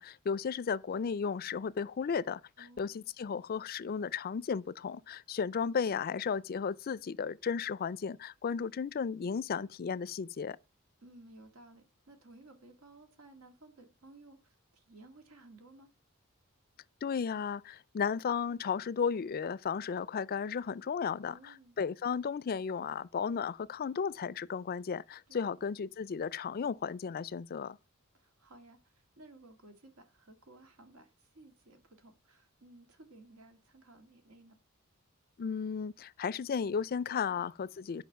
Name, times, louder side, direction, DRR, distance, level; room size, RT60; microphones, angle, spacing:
voice 1, 0.0-10.6 17.0-27.8 35.4-38.0, left 6 dB, 45° left, 0.4 m, -34 dB
voice 2, 2.6-2.9 11.0-15.9 21.2-21.8 25.3-25.6 28.1-28.8 29.2-34.6 37.3-37.5, right 2 dB, 90° right, 2.0 m, -57 dB
9.3 x 5.3 x 5.6 m
head